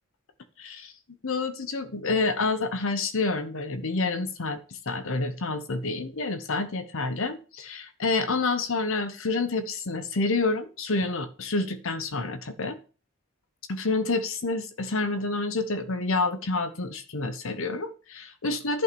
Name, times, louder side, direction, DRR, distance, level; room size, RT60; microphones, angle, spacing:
voice 1, 0.6-0.9 1.2-4.6 4.9-12.8 13.7-18.8, left 3 dB, 65° left, 1.0 m, -28 dB
11.0 x 5.6 x 6.9 m
head